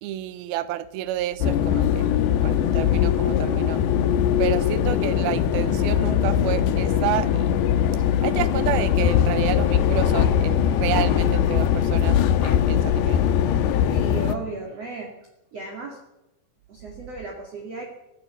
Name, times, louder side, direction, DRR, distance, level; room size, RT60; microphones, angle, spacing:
voice 1, 0.0-2.1 2.4-3.8 4.4-7.5 8.2-13.3, right 13 dB, 70° right, 14 dB, 2.6 m, -30 dB
sound 1, 1.4-14.4, left 9 dB, 75° left, 3.0 m, -21 dB
voice 2, 13.9-15.1 15.5-16.0 16.7-17.9, right 3 dB, 45° right, 0 dB, 2.8 m, -35 dB
23.5 x 16.0 x 6.9 m, 0.94 s
omnidirectional pair, 5.0 m